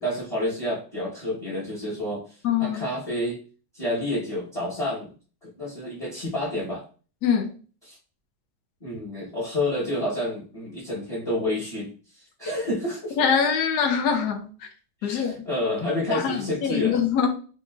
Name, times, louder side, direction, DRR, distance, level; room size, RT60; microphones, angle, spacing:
voice 1, 0.0-2.2 2.6-3.4 3.7-5.1 5.4-6.8 7.9-8.0 8.8-11.9 12.4-13.2 15.0-17.0, left 1 dB, 25° left, 1.1 m, -29 dB
voice 2, 2.4-2.8 7.2-7.5 13.2-14.5 15.0-15.4 16.1-17.3, left 7 dB, 85° left, 1.3 m, -23 dB
4.6 x 2.7 x 2.4 m
omnidirectional pair, 1.7 m